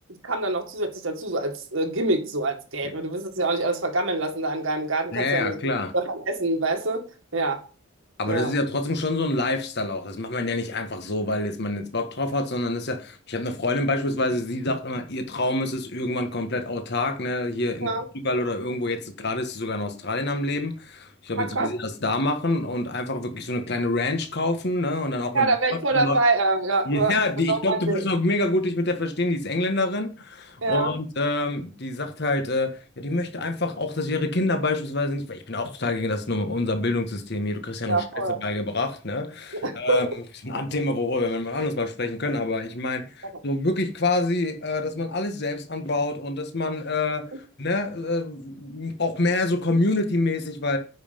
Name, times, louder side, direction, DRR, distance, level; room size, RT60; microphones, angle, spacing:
voice 1, 0.1-5.6 5.9-7.6 8.3-8.5 17.8-18.1 21.4-21.7 25.3-27.2 27.5-28.0 30.6-30.9 37.9-38.4 39.6-40.0, right 2 dB, 65° right, 2.0 m, -25 dB
voice 2, 5.1-5.9 8.2-17.9 18.2-25.5 25.9-26.2 26.8-40.1 40.4-47.2 47.6-50.8, left 2 dB, 50° left, 1.4 m, -26 dB
9.8 x 5.6 x 5.2 m
head